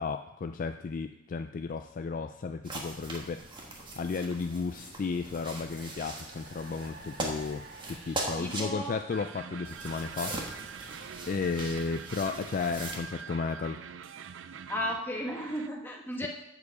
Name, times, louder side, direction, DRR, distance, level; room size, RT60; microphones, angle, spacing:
voice 1, 0.0-3.4 4.0-10.4 10.8-11.0 11.3-13.8, left 4 dB, 45° left, 7 dB, 0.4 m, -34 dB
sound 1, 2.6-8.7 9.7-13.0, right 2 dB, 25° right, 1.5 m, -40 dB
sound 2, 2.8-10.9, right 2 dB, 60° right, 2.2 m, -54 dB
voice 2, 8.4-8.9 14.7-16.3, equal, 10° left, -1 dB, 1.5 m, -34 dB
sound 3, 9.1-15.7, right 7 dB, 80° right, 0.4 m, -45 dB
13.5 x 5.0 x 4.8 m, 0.83 s
head